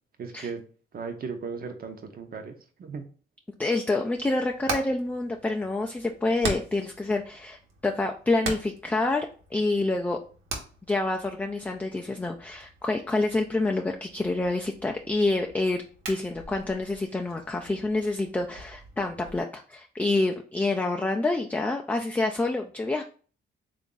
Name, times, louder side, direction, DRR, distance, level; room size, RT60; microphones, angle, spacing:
voice 1, 0.2-0.6 0.9-3.1, right 5 dB, 50° right, 6 dB, 0.8 m, -36 dB
voice 2, 3.6-10.2 10.9-15.8 16.1-23.0, left 2 dB, 10° left, 3 dB, 0.3 m, -27 dB
Hammer, 4.2-19.4, right 3 dB, 80° right, 1.1 m, -41 dB
3.5 x 2.5 x 3.9 m, 0.41 s
cardioid pair, 90°, 20 cm